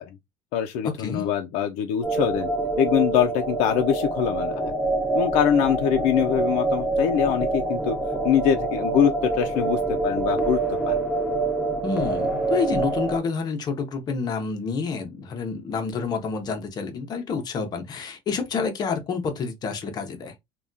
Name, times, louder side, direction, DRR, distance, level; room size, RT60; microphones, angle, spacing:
voice 1, 0.5-2.5 2.8-4.7 5.1-8.0 8.2-11.0, left 9 dB, 80° left, 0.4 m, -23 dB
sound 1, 2.0-13.2, right 2 dB, 10° right, 0.6 m, -26 dB
voice 2, 11.8-20.3, left 5 dB, 35° left, 0.7 m, -28 dB
3.3 x 2.2 x 2.5 m
cardioid pair, 155°, 12 cm